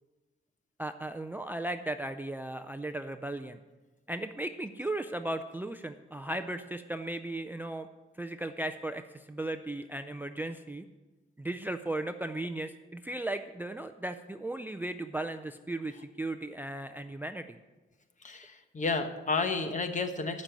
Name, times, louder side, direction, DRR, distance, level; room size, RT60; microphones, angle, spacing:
voice 1, 0.8-3.6 4.1-7.9 8.2-10.9 11.4-17.6, right 1 dB, 10° right, 9 dB, 0.3 m, -36 dB
voice 2, 18.2-20.4, left 4 dB, 40° left, 7 dB, 1.0 m, -31 dB
12.0 x 5.3 x 8.8 m, 1.2 s
wide cardioid pair, 165°, 21 cm